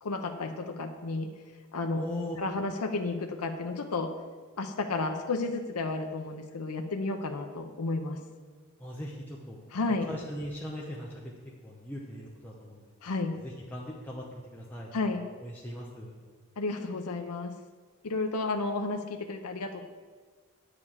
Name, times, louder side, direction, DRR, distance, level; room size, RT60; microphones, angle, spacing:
voice 1, 0.0-1.3 1.7-2.1 2.4-4.1 4.6-8.2 9.7-10.1 13.0-13.4 14.9-15.2 16.6-17.5 18.0-19.8, left 3 dB, 90° left, 5 dB, 0.7 m, -32 dB
voice 2, 2.0-2.4 8.8-9.6 10.1-11.2 11.6-12.8 13.4-16.2, equal, 10° left, -4 dB, 0.8 m, -40 dB
9.6 x 5.0 x 7.2 m, 1.5 s
head